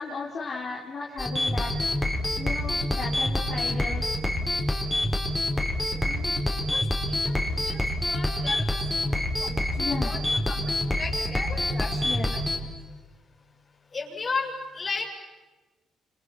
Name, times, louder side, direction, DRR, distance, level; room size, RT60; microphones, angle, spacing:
voice 1, 0.0-1.8 2.4-4.1 6.0-6.4 7.3-7.5 9.8-10.1 12.0-12.3, left 4 dB, 55° left, -3 dB, 3.6 m, -35 dB
sound 1, 1.2-12.6, left 1 dB, 10° left, 4.1 m, -27 dB
voice 2, 6.7-9.6 9.8-10.6 10.9-12.6 13.9-15.1, left 4 dB, 35° left, 1 dB, 7.3 m, -36 dB
29.5 x 28.0 x 5.9 m, 1.2 s
cardioid pair, 90°, 0 cm